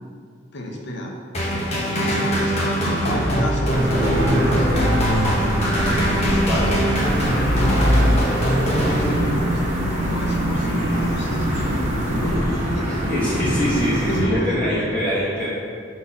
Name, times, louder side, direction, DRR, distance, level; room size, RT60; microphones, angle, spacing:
voice 1, 0.5-1.1 2.0-4.9 5.9-8.0 8.7-13.6 14.1-15.2, left 1 dB, 65° left, 0 dB, 0.9 m, -31 dB
sound 1, 1.3-9.7, equal, 35° left, 1.0 m, -21 dB
sound 2, 3.7-14.2, equal, 40° right, 1.2 m, -25 dB
voice 2, 6.4-7.6 13.1-15.5, equal, 5° left, -11 dB, 1.3 m, -24 dB
sound 3, 7.0-12.4, right 1 dB, 60° right, 0.6 m, -34 dB
5.6 x 3.1 x 5.6 m, 2.1 s
head